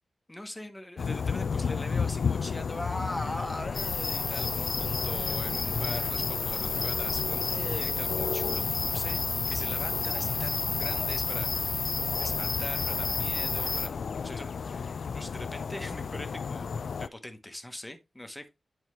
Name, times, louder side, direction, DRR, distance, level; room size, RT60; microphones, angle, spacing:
voice 1, 0.3-9.2 9.5-11.9 12.2-13.9 14.2-16.6 17.0-18.5, left 1 dB, 10° left, 1.1 m, -41 dB
sound 1, 1.0-17.1, left 5 dB, 75° left, 0.4 m, -33 dB
sound 2, 3.7-13.9, left 4 dB, 45° left, 0.9 m, -31 dB
9.7 x 4.5 x 3.2 m
wide cardioid pair, 125°, 0 cm